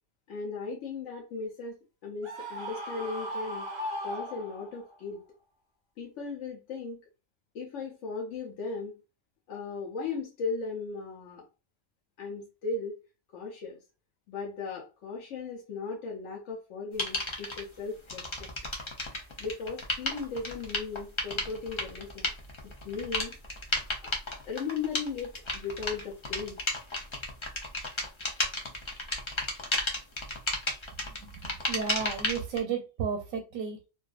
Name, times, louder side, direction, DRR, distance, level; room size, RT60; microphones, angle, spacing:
voice 1, 0.3-1.8 2.0-3.7 4.0-5.2 6.0-7.0 7.5-8.9 9.5-11.5 12.2-12.9 13.3-13.8 14.3-18.5 19.4-22.3 22.8-23.4 24.0-24.1 24.5-26.6, left 4 dB, 70° left, 0.9 m, -37 dB
Screaming, 2.2-4.9, equal, 40° right, 0.4 m, -37 dB
sound 1, 17.0-17.6 18.1-32.6, left 2 dB, 40° left, 0.4 m, -33 dB
voice 2, 31.0-33.8, right 6 dB, 90° right, 1.0 m, -33 dB
2.5 x 2.3 x 2.3 m
omnidirectional pair, 1.4 m